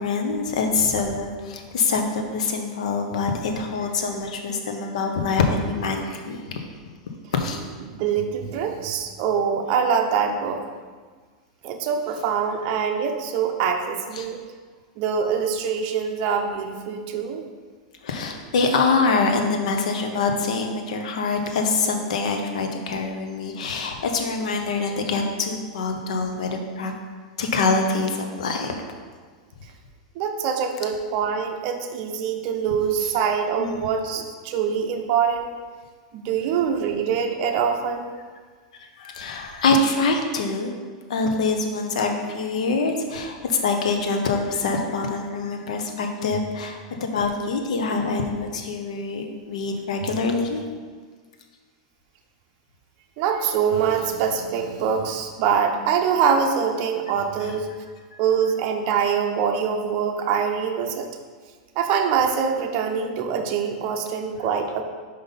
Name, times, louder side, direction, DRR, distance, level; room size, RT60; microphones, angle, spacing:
voice 1, 0.0-6.6 7.3-7.6 14.2-14.3 18.0-26.9 27.4-28.8 33.6-33.7 38.8-40.7 41.1-50.6 57.4-57.5, left 4 dB, 80° left, 4 dB, 0.9 m, -25 dB
voice 2, 7.8-10.6 11.6-14.4 15.0-17.4 30.1-35.5 36.1-38.1 50.0-50.1 53.2-57.7 58.2-61.1 61.8-64.8, right 7 dB, 45° right, 4 dB, 0.7 m, -24 dB
5.4 x 5.1 x 4.1 m, 1.5 s
supercardioid pair, 140°, 4 cm